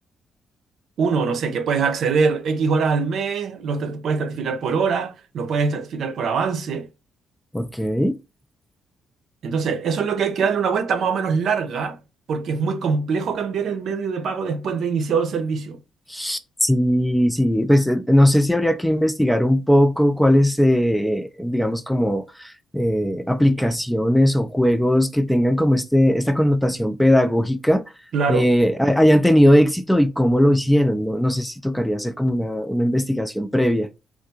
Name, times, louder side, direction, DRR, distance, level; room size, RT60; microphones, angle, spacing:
voice 1, 1.0-6.9 9.4-12.0 12.3-15.8 28.1-28.5, right 5 dB, 65° right, 0.7 m, -23 dB
voice 2, 7.5-8.2 16.1-27.8 28.3-33.9, equal, 5° left, 0.4 m, -19 dB
3.5 x 2.4 x 2.8 m
cardioid pair, 90°, 0 cm